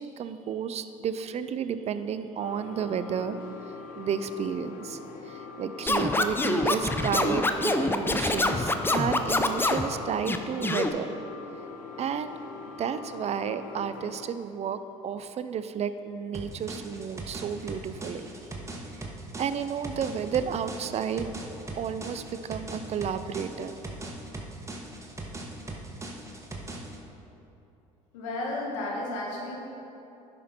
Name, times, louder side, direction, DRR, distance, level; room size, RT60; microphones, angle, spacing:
voice 1, 0.0-3.4 4.0-5.0 5.3-11.2 12.0-12.3 12.8-18.3 19.4-21.3 21.8-23.7 25.7-25.8, right 7 dB, 40° right, 12 dB, 0.5 m, -32 dB
sound 1, 2.4-14.3, left 4 dB, 55° left, 1.1 m, -43 dB
Scratching (performance technique), 5.9-9.9 10.3-10.9, left 2 dB, 15° left, 0.6 m, -25 dB
sound 2, 16.3-27.0, right 2 dB, 20° right, 1.3 m, -40 dB
voice 2, 28.1-29.6, left 2 dB, 80° left, -2 dB, 1.8 m, -33 dB
10.0 x 6.1 x 4.4 m, 2.9 s
hypercardioid pair, 70°, 16 cm